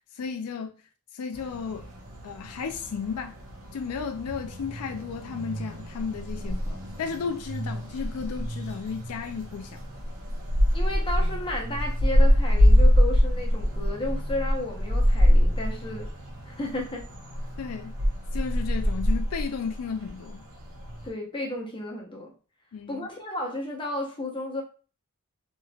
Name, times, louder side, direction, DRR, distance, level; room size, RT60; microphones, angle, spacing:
voice 1, 0.1-0.7 1.1-1.9 2.2-3.3 3.7-9.9 17.6-17.9 18.3-20.4 22.7-23.1, left 6 dB, 75° left, 0.4 m, -34 dB
sound 1, 1.3-21.1, equal, 70° right, 0.9 m, -25 dB
voice 2, 10.7-16.1 16.5-17.1 21.0-22.3 22.9-24.6, left 1 dB, 25° left, 0.8 m, -33 dB
3.2 x 3.1 x 2.3 m
head